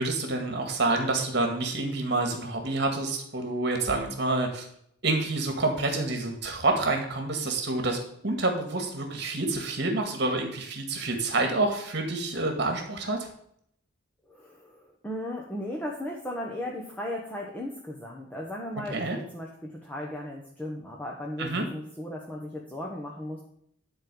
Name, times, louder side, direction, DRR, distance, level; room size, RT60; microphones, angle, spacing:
voice 1, 0.0-4.7 5.0-13.2 18.9-19.2 21.4-21.7, right 2 dB, 55° right, 3 dB, 2.0 m, -28 dB
voice 2, 14.3-23.4, left 1 dB, 10° left, -2 dB, 1.3 m, -36 dB
11.5 x 4.5 x 7.0 m, 0.69 s
head